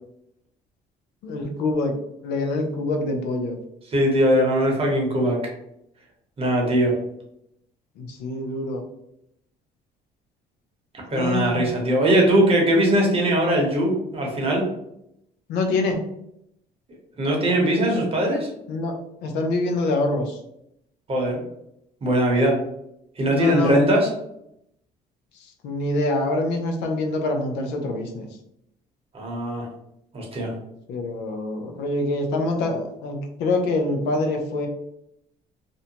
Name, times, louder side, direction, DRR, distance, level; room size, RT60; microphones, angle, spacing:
voice 1, 1.2-2.0 2.2-3.6 8.0-8.8 11.1-11.7 15.5-16.0 18.7-20.4 23.3-23.8 25.4-28.3 30.9-34.7, left 2 dB, 85° left, 4 dB, 0.6 m, -25 dB
voice 2, 3.9-5.4 6.4-6.9 11.1-14.7 17.2-18.5 21.1-21.4 22.0-22.6 23.2-24.1 29.1-29.7 30.1-30.5, right 1 dB, 35° right, 0 dB, 0.9 m, -20 dB
2.6 x 2.1 x 2.8 m, 0.79 s
cardioid pair, 110°, 17 cm